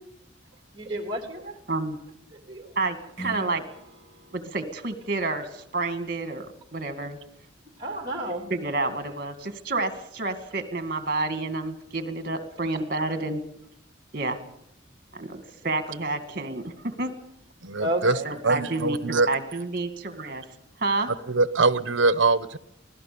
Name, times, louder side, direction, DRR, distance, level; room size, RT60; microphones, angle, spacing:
voice 1, 0.7-1.6 2.3-3.1 6.8-7.0 7.8-8.5 13.1-13.2 17.8-18.3, right 1 dB, 25° right, 2.9 m, -32 dB
voice 2, 2.8-3.6 4.3-6.5 6.7-7.2 8.5-13.4 14.1-14.4 15.1-17.1 18.2-19.0 19.3-20.4 20.8-21.1, right 3 dB, 45° right, 2.2 m, -29 dB
Strum, 3.1-8.3, right 2 dB, 35° left, 4.2 m, -47 dB
voice 3, 17.6-18.1 18.4-19.3 21.3-22.6, right 3 dB, 70° right, 1.0 m, -22 dB
25.0 x 17.0 x 7.0 m
head